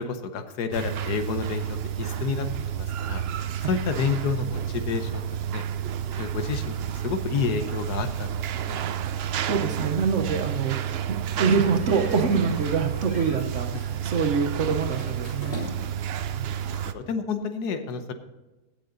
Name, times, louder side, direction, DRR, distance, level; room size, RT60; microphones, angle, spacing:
voice 1, 0.0-2.5 2.7-5.6 6.2-8.8 16.5-18.1, left 5 dB, 80° left, 8 dB, 1.5 m, -30 dB
sound 1, 0.7-16.9, right 9 dB, 85° right, 0.5 m, -30 dB
voice 2, 9.1-10.9 11.4-15.6 16.4-16.5, right 5 dB, 55° right, 6 dB, 1.2 m, -25 dB
sound 2, 11.6-12.8 13.1-13.5 14.8-16.0, left 1 dB, 35° left, 3.5 m, -41 dB
16.0 x 6.9 x 3.9 m, 1.1 s
omnidirectional pair, 1.7 m